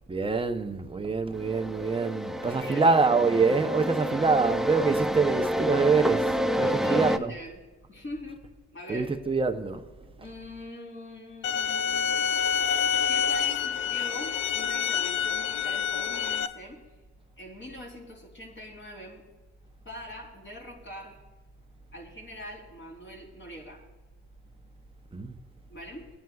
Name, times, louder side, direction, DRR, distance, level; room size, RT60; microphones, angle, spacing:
voice 1, 0.1-6.3 6.6-7.3 8.9-9.8 25.1-25.3, right 4 dB, 20° right, 0.7 m, -25 dB
sound 1, 1.3-7.2, equal, ahead, 0.3 m, -29 dB
voice 2, 2.4-2.9 6.6-7.6 7.9-8.4 8.7-9.1 10.2-12.4 12.9-16.8 17.4-19.2 19.9-21.1 21.9-23.8 25.7-26.1, left 1 dB, 40° left, 3.6 m, -43 dB
sound 2, 11.4-16.5, left 8 dB, 80° left, 0.6 m, -27 dB
20.5 x 9.2 x 2.4 m
cardioid pair, 90°, 30 cm